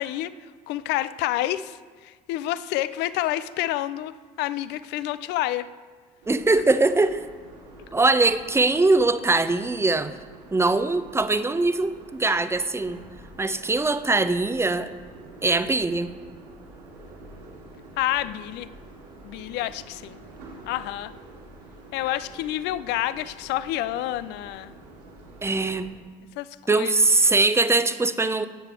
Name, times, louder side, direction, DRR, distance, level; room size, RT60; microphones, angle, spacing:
voice 1, 0.0-5.7 18.0-18.7 19.2-20.2 20.7-21.1 21.9-24.7 26.4-27.0, left 14 dB, 55° left, 15 dB, 0.6 m, -29 dB
sound 1, 6.2-25.9, right 2 dB, 80° right, 3.8 m, -47 dB
voice 2, 6.3-7.2 7.9-10.1 10.5-13.0 13.4-14.9 15.4-16.1 25.4-25.9 26.7-28.5, right 3 dB, 10° right, 12 dB, 0.8 m, -21 dB
15.0 x 9.2 x 4.5 m, 1.5 s
figure-of-eight pair, 50°, 21 cm